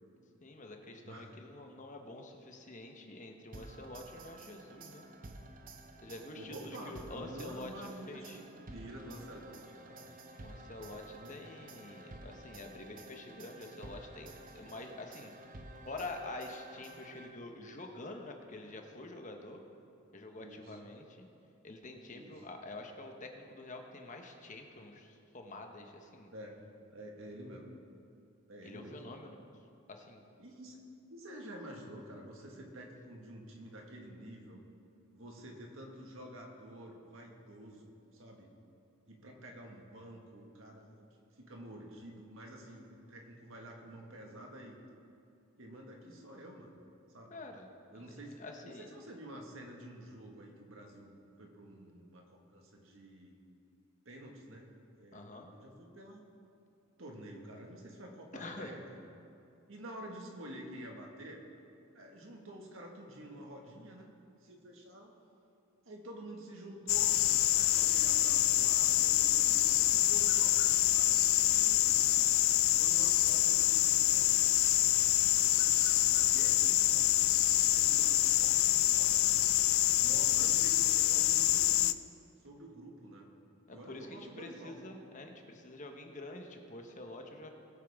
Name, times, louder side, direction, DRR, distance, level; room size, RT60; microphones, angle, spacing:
voice 1, 0.4-5.1 6.0-7.7 8.1-8.4 10.4-15.3 15.8-19.6 20.1-21.3 21.6-26.3 28.6-29.4 29.9-30.2 47.3-47.7 48.0-48.1 48.4-48.8 55.1-55.5 58.3-58.7 80.4-80.6 83.7-87.5, left 2 dB, 40° left, 3 dB, 1.1 m, -47 dB
sound 1, 3.5-17.6, right 2 dB, 45° right, 0.8 m, -52 dB
voice 2, 6.3-8.4 8.7-10.1 11.1-11.3 20.4-20.9 22.1-22.4 26.3-26.6 26.9-27.7 28.5-29.1 30.4-30.8 31.1-34.6 35.1-38.5 39.1-41.1 41.4-44.8 45.6-46.7 47.1-47.4 47.9-51.1 51.4-53.4 54.0-55.3 55.5-56.2 57.0-58.8 59.7-61.4 61.9-64.1 64.4-65.1 65.8-67.2 67.5-72.1 72.8-75.1 75.5-75.7 76.1-79.3 79.9-81.9 82.4-83.3 83.7-84.9, right 1 dB, 75° right, 0 dB, 1.8 m, -49 dB
sound 2, 66.9-81.9, left 15 dB, 85° left, 0.4 m, -26 dB
20.5 x 8.4 x 3.6 m, 2.6 s
head